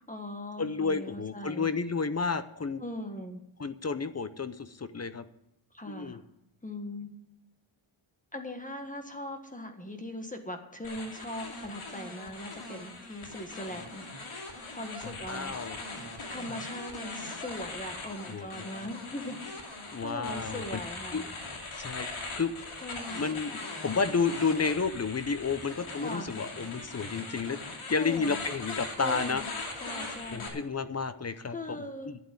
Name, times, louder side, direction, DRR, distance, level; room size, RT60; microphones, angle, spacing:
voice 1, 0.1-1.7 2.8-3.4 5.7-6.2 6.6-7.1 8.3-15.6 16.3-19.4 20.0-21.3 22.8-23.3 26.0-26.3 27.9-28.4 29.0-29.5 29.8-30.5 31.5-32.2, left 1 dB, 15° left, 5 dB, 1.5 m, -40 dB
voice 2, 0.6-2.8 3.6-5.3 5.8-6.2 15.0-15.8 18.3-18.5 19.9-20.8 21.1-21.2 21.8-22.1 22.4-22.5 23.2-27.6 27.9-29.4 30.3-31.8 32.0-32.2, left 5 dB, 30° left, 12 dB, 0.7 m, -31 dB
sound 1, 10.8-30.5, left 3 dB, 75° left, 2.8 m, -40 dB
11.5 x 8.5 x 8.4 m, 0.84 s
wide cardioid pair, 145°, 49 cm